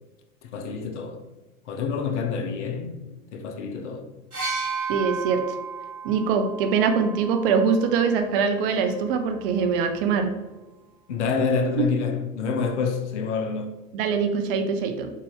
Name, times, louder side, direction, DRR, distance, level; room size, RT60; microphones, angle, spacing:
voice 1, 0.4-1.2 1.7-2.9 3.3-4.1 11.1-13.8, left 5 dB, 55° left, 1.0 m, -27 dB
sound 1, 4.3-8.1 9.2-9.3, right 5 dB, 85° right, 1.5 m, -33 dB
voice 2, 4.9-5.4 6.0-10.3 11.8-11.9 13.9-15.1, right 5 dB, 40° right, 0.8 m, -23 dB
6.2 x 4.1 x 3.8 m
figure-of-eight pair, 95°, 43 cm